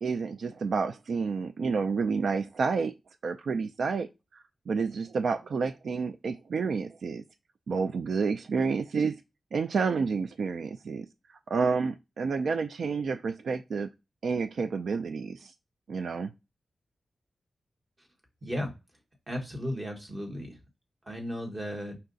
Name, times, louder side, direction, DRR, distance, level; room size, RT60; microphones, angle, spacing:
voice 1, 0.0-2.9 3.2-4.1 4.3-7.2 7.7-9.2 9.5-11.1 11.5-13.9 14.2-15.5 15.9-16.3, right 5 dB, 70° right, 0.3 m, -29 dB
voice 2, 18.4-18.7 19.3-20.6 21.1-22.0, equal, 25° right, 1.2 m, -35 dB
5.5 x 2.4 x 3.9 m
wide cardioid pair, 165°, 0 cm